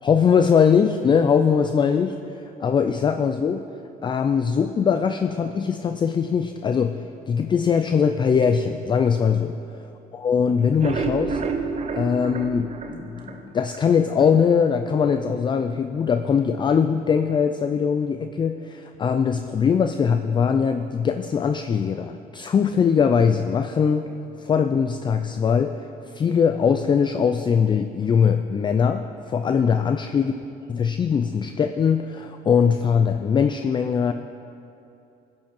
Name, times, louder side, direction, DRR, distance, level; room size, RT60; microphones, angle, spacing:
voice 1, 0.0-3.6 4.0-9.5 10.1-11.4 11.9-24.1 24.4-25.8 26.1-30.3 30.7-34.1, left 6 dB, 30° left, 7 dB, 0.4 m, -21 dB
sound 1, 10.6-13.8 14.2-14.3 14.7-14.8 15.1-15.2, right 5 dB, 40° right, 0.8 m, -29 dB
15.0 x 5.3 x 5.4 m, 2.7 s
cardioid pair, 110°, 17 cm